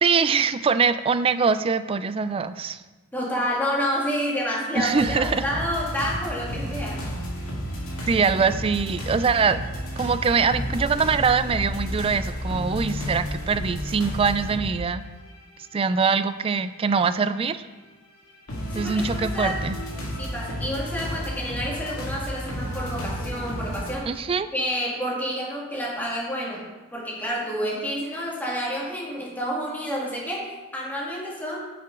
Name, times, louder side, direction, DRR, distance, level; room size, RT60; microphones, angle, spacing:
voice 1, 0.0-2.8 4.8-5.4 8.1-9.6 10.0-15.0 15.7-17.7 18.7-19.8 24.1-24.5, right 5 dB, 25° right, 12 dB, 0.3 m, -23 dB
voice 2, 3.1-7.0 18.7-19.6 20.2-24.1 24.5-31.6, equal, 10° left, -5 dB, 2.0 m, -29 dB
sound 1, 4.8-14.7 15.3-15.4 16.3-16.4 18.5-23.9, equal, 90° left, 2.2 m, -32 dB
9.3 x 5.8 x 3.7 m, 1.2 s
head